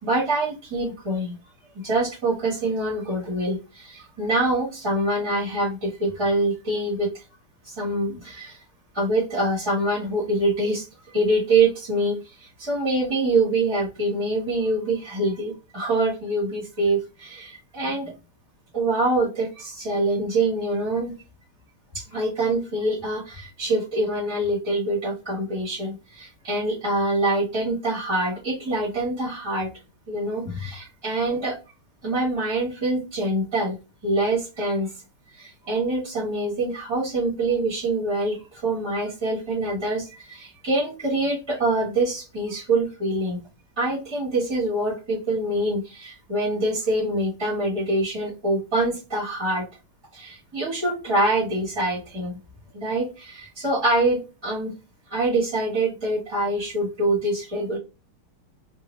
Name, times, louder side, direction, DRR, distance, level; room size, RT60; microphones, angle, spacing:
voice 1, 0.0-1.4 1.8-7.2 7.6-8.6 8.9-18.1 18.7-21.1 21.9-29.7 30.1-31.6 32.0-33.8 34.0-34.9 35.3-43.4 43.8-49.7 50.1-52.4 52.7-54.7 55.1-57.8, right 2 dB, 15° right, -3 dB, 0.9 m, -25 dB
3.8 x 2.3 x 3.1 m, 0.30 s
omnidirectional pair, 2.4 m